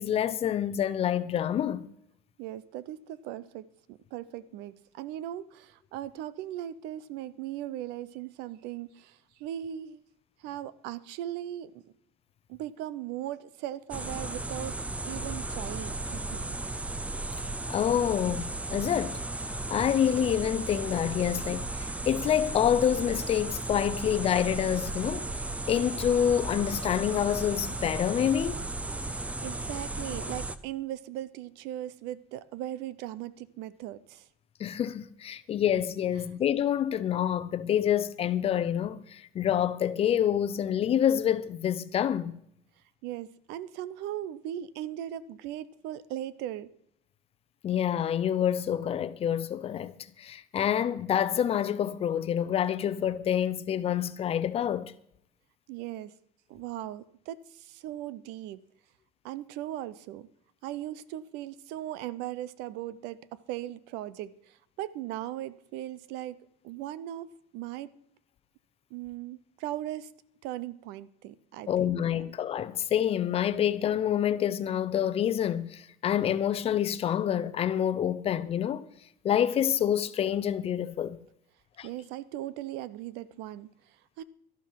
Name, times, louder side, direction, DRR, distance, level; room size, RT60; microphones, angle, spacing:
voice 1, 0.0-1.9 17.7-19.2 19.7-25.2 25.7-28.7 34.6-42.3 47.6-54.9 71.7-78.9 79.2-81.2 81.8-81.9, left 9 dB, 35° left, 0.7 m, -27 dB
voice 2, 2.4-10.0 10.4-11.8 12.5-14.8 15.0-16.5 29.1-34.3 43.0-46.7 55.7-56.1 56.5-58.6 59.2-60.3 60.6-66.4 66.6-67.9 68.9-70.1 70.4-72.3 81.8-84.2, right 12 dB, 75° right, 0.7 m, -38 dB
sound 1, 13.9-30.6, right 2 dB, 10° right, 0.6 m, -35 dB
12.5 x 11.5 x 4.7 m
cardioid pair, 145°, 17 cm